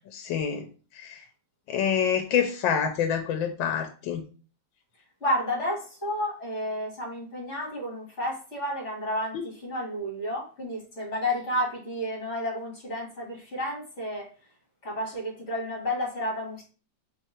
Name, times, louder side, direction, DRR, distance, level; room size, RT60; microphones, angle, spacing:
voice 1, 0.1-0.7 0.9-1.2 1.7-4.2 9.3-9.4, left 8 dB, 80° left, 6 dB, 1.3 m, -27 dB
voice 2, 5.2-14.3 14.8-16.6, left 1 dB, 40° left, -2 dB, 1.8 m, -31 dB
3.5 x 3.2 x 4.2 m, 0.37 s
omnidirectional pair, 2.1 m